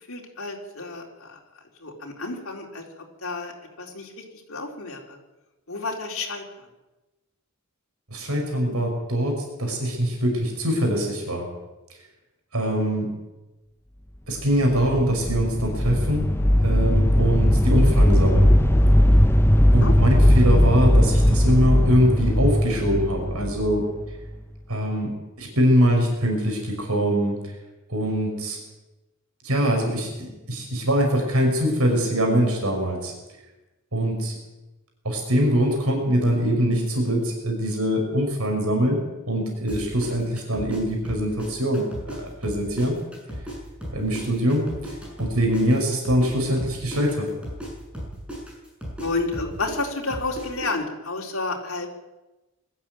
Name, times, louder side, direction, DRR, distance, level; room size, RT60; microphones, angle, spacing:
voice 1, 0.1-1.4 1.8-2.8 3.2-3.5 3.8-4.2 4.5-5.2 5.7-6.4 19.8-19.9 49.0-51.9, left 3 dB, 70° left, -1 dB, 4.1 m, -30 dB
voice 2, 8.1-11.4 12.5-13.2 14.3-16.3 16.6-18.5 19.7-23.8 24.7-27.5 27.9-28.6 29.4-33.1 33.9-34.4 35.0-39.0 39.3-43.0 43.9-47.3, equal, 85° right, 2 dB, 5.5 m, -23 dB
sound 1, 14.5-24.4, equal, 10° left, 0.7 m, -18 dB
sound 2, 39.7-42.2 42.4-46.3 46.6-50.7, equal, 5° right, 7.3 m, -35 dB
21.0 x 13.5 x 9.2 m, 1.1 s
head